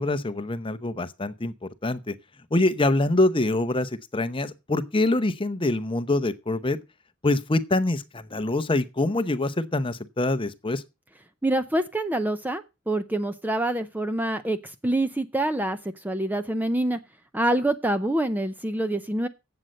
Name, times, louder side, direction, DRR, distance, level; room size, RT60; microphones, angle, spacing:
voice 1, 0.0-2.1 2.5-6.8 7.2-10.8, left 2 dB, 25° left, 0.7 m, -25 dB
voice 2, 11.4-15.8 16.0-17.0 17.3-19.3, right 1 dB, 10° right, 0.5 m, -26 dB
12.0 x 7.9 x 6.4 m
head